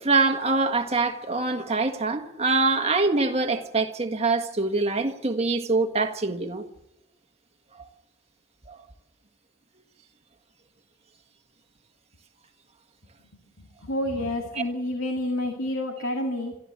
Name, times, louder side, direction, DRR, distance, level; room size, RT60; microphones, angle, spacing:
voice 1, 0.0-6.6 8.7-8.8, right 3 dB, 30° right, 1.6 m, -24 dB
voice 2, 13.6-16.6, left 1 dB, 80° left, 2.3 m, -29 dB
27.0 x 13.0 x 7.5 m
head